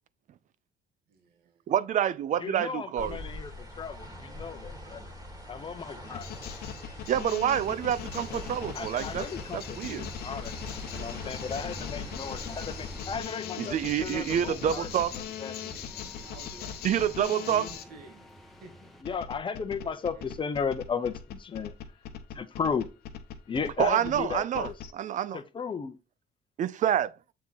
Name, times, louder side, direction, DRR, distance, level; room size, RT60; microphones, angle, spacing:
voice 1, 1.1-1.6 15.6-19.2 19.8-20.6, right 4 dB, 65° right, 1.7 m, -52 dB
voice 2, 1.7-3.2 7.1-9.3 9.5-10.1 13.6-15.1 16.8-17.7 23.8-25.4 26.6-27.1, right 10 dB, 50° right, 0.5 m, -27 dB
voice 3, 2.4-5.1 5.5-6.3 8.7-10.5 10.9-15.5 19.0-21.7 22.3-22.9 23.5-24.7 25.3-26.0, left 6 dB, 30° left, 0.8 m, -35 dB
sound 1, 3.0-13.2, equal, 20° right, 2.2 m, -44 dB
sound 2, 6.0-17.8 19.0-24.9, left 8 dB, 70° left, 1.0 m, -40 dB
sound 3, 7.5-19.0, right 1 dB, ahead, 1.1 m, -48 dB
7.5 x 3.7 x 4.1 m
cardioid pair, 110°, 17 cm